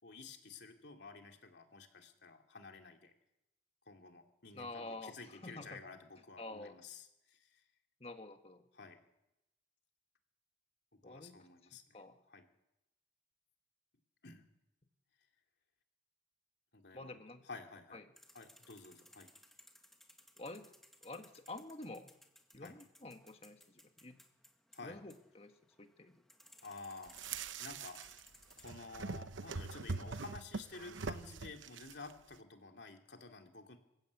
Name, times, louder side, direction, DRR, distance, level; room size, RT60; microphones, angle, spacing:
voice 1, 0.0-3.1 3.9-7.6 8.7-9.0 10.9-12.0 12.3-12.4 14.2-14.4 16.7-17.2 17.4-18.0 18.3-19.3 22.6-22.8 24.7-25.0 26.6-28.0 28.6-33.8, left 4 dB, 65° left, 3 dB, 2.7 m, -52 dB
voice 2, 4.5-5.1 5.4-5.8 6.4-6.7 8.0-8.6 11.0-11.4 11.7-12.2 16.9-17.4 17.9-18.0 20.4-20.7 21.0-22.1 22.5-24.2 24.8-25.5 25.8-26.2, left 2 dB, 30° left, 6 dB, 1.6 m, -48 dB
sound 1, 18.2-28.7, left 1 dB, ahead, 1.7 m, -63 dB
sound 2, 27.1-28.2 28.5-32.1, right 4 dB, 90° right, 0.9 m, -43 dB
27.0 x 15.5 x 8.4 m, 0.91 s
head